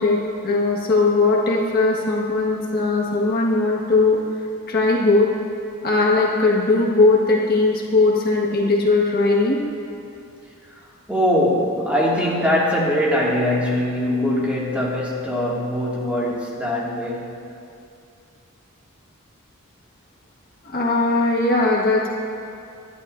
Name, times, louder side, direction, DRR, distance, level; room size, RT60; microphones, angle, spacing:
voice 1, 0.0-4.2 4.7-5.3 5.8-9.6 20.6-22.1, left 3 dB, 45° left, -3 dB, 1.7 m, -19 dB
voice 2, 11.1-17.3, left 1 dB, 5° right, -6 dB, 2.2 m, -22 dB
26.0 x 11.0 x 2.7 m, 2.5 s
head